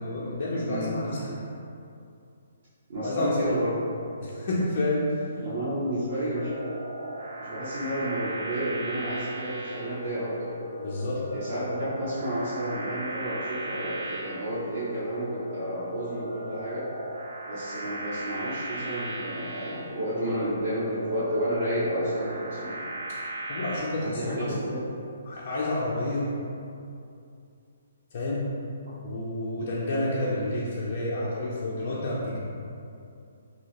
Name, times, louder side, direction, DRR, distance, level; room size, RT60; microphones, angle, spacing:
voice 1, 0.0-1.4 3.0-3.5 4.2-5.2 10.8-11.3 23.1-23.2 23.5-24.6 25.2-26.3 28.1-28.5 29.0-32.4, left 1 dB, 50° left, -6 dB, 0.5 m, -29 dB
voice 2, 0.7-1.0 2.9-3.8 5.4-6.5 7.4-10.5 11.3-16.8 17.5-22.7 23.9-24.8, right 1 dB, 50° right, -12 dB, 0.9 m, -31 dB
sound 1, 6.3-23.8, right 1 dB, 70° right, 1.4 m, -37 dB
2.7 x 2.7 x 2.8 m, 2.5 s
figure-of-eight pair, 130°, 0 cm